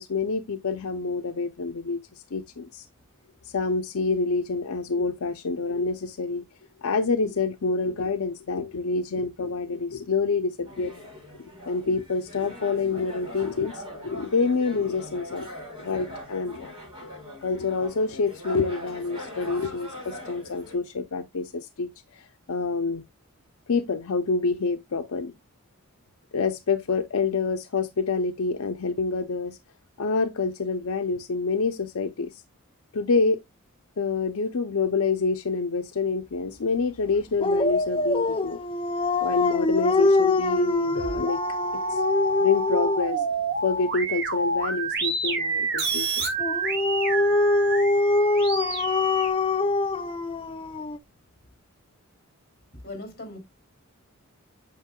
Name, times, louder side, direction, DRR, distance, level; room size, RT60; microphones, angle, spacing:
voice 1, 0.0-2.0 2.3-2.9 3.4-6.4 6.8-10.9 11.7-15.5 15.8-16.7 17.0-17.1 17.4-23.0 23.7-25.3 26.3-29.6 30.0-32.4 32.9-33.4 34.0-38.6 39.2-41.4 41.9-42.0 42.4-43.2 43.6-46.3, left 4 dB, 85° left, 0.6 m, -27 dB
sound 1, 10.6-20.8, left 1 dB, 25° right, 5.4 m, -41 dB
Dog, 37.4-43.2 46.4-51.0, left 2 dB, 25° left, 0.4 m, -24 dB
sound 2, 40.9-49.3, right 3 dB, 50° right, 1.8 m, -28 dB
voice 2, 52.8-53.4, left 2 dB, 45° left, 2.7 m, -38 dB
8.4 x 6.6 x 2.3 m
head